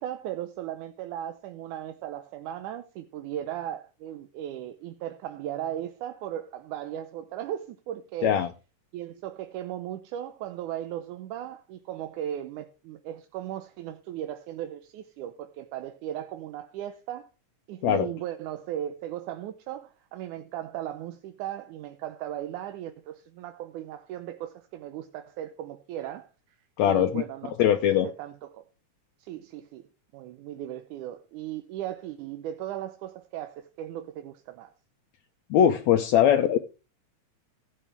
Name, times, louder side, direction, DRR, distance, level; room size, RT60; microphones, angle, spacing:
voice 1, 0.0-8.3 8.9-17.3 17.7-26.3 26.8-27.5 27.9-28.7 29.2-29.9 30.1-34.7, right 11 dB, 85° right, 2.3 m, -37 dB
voice 2, 26.8-27.2 27.6-28.1 35.5-36.6, left 10 dB, 75° left, 1.9 m, -21 dB
16.5 x 8.2 x 3.4 m
omnidirectional pair, 3.5 m